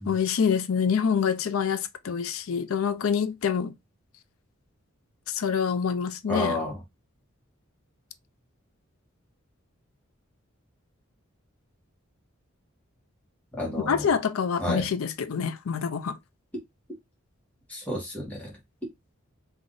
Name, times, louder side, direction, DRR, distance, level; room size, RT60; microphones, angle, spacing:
voice 1, 0.0-3.7 5.3-6.6 13.9-16.2, left 6 dB, 80° left, 0.5 m, -26 dB
voice 2, 6.3-6.8 13.6-14.1 14.6-14.8 17.7-18.5, left 1 dB, 5° left, 1.3 m, -30 dB
3.4 x 2.5 x 3.7 m
head